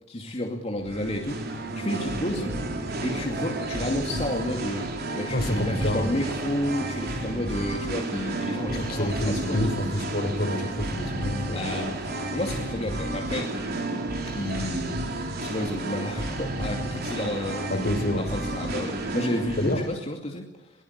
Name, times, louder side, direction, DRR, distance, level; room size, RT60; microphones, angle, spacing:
voice 1, 0.1-2.5 3.0-9.7 11.5-13.5 14.3-17.7 18.3-20.7, left 1 dB, 35° left, 1 dB, 2.6 m, -31 dB
Singing, 0.8-19.9, right 1 dB, 55° right, 3.5 m, -31 dB
voice 2, 5.3-6.2 8.7-11.9 17.7-18.3 19.6-19.9, left 1 dB, 55° left, 8 dB, 3.7 m, -28 dB
22.5 x 19.5 x 8.3 m, 0.97 s
head